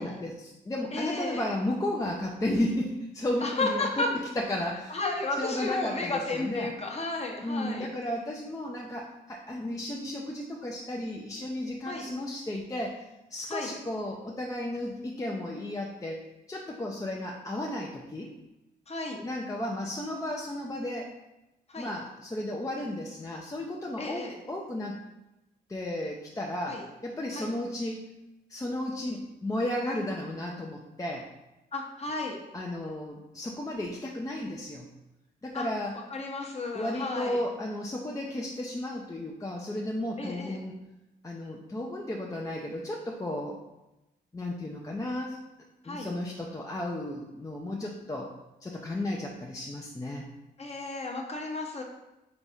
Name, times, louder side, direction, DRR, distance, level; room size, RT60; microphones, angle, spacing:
voice 1, 0.0-4.0 4.4-5.0 5.4-6.7 7.4-13.0 13.3-18.3 19.2-21.1 21.8-25.0 25.7-28.1 28.5-31.3 32.5-34.9 35.4-36.0 36.7-40.8 41.2-43.6 44.3-45.4 45.8-48.3 48.6-50.3, left 1 dB, 20° left, -1 dB, 0.6 m, -34 dB
voice 2, 0.9-1.4 3.4-4.1 4.9-7.9 11.8-12.1 13.5-13.7 18.9-19.2 21.7-21.9 24.0-24.3 26.7-26.8 27.3-27.5 31.7-32.4 35.5-35.7 36.1-37.4 40.2-40.6 45.8-46.1 50.6-51.8, left 2 dB, 35° left, 1 dB, 0.9 m, -33 dB
4.0 x 3.5 x 3.5 m, 0.96 s
cardioid pair, 65°, 18 cm